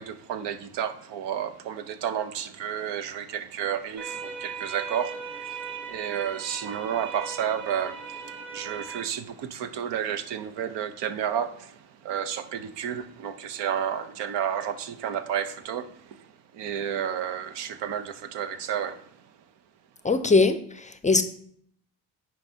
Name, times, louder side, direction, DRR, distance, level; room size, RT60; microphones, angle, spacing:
voice 1, 0.0-16.3 16.5-19.1, right 9 dB, 75° right, 0.7 m, -31 dB
sound 1, 4.0-9.0, right 6 dB, 40° right, 2.4 m, -38 dB
voice 2, 20.0-21.2, left 3 dB, 20° left, 0.4 m, -21 dB
9.6 x 4.6 x 2.7 m
supercardioid pair, 65°, 42 cm